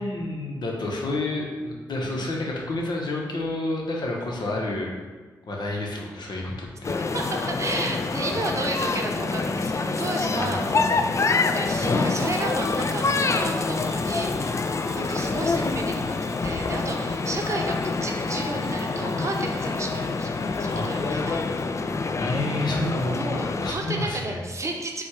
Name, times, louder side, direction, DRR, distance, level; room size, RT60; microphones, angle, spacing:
voice 1, 0.0-4.9 5.5-7.0 10.4-11.0 20.7-21.2 22.2-23.2 23.6-24.4, left 2 dB, 60° left, -1 dB, 0.9 m, -30 dB
voice 2, 2.0-2.3 7.0-10.9 11.4-21.6 23.2-25.0, right 2 dB, 35° right, 1 dB, 0.7 m, -32 dB
sound 1, 6.8-23.7, left 3 dB, 40° left, 0.3 m, -26 dB
Bell / Alarm, 12.2-21.7, right 4 dB, 85° right, 0.8 m, -48 dB
4.4 x 2.3 x 4.5 m, 1.3 s
supercardioid pair, 40°, 8 cm